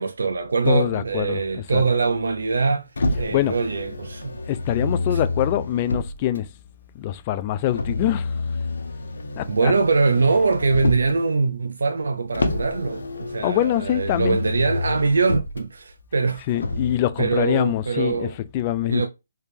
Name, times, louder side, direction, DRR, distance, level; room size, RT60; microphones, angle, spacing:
voice 1, 0.0-2.9 3.2-4.4 4.8-4.9 9.5-16.5 17.2-18.3 18.8-19.1, right 4 dB, 80° right, 0.5 m, -23 dB
voice 2, 0.6-1.9 3.1-3.7 4.5-6.5 6.9-8.4 9.4-9.8 13.4-14.4 16.4-19.1, left 13 dB, 25° left, 0.3 m, -24 dB
Motor vehicle (road), 3.0-6.4 7.7-11.2 12.3-15.6 16.5-17.0, left 2 dB, 85° left, 0.9 m, -28 dB
3.4 x 3.2 x 2.7 m
hypercardioid pair, 170°, 0 cm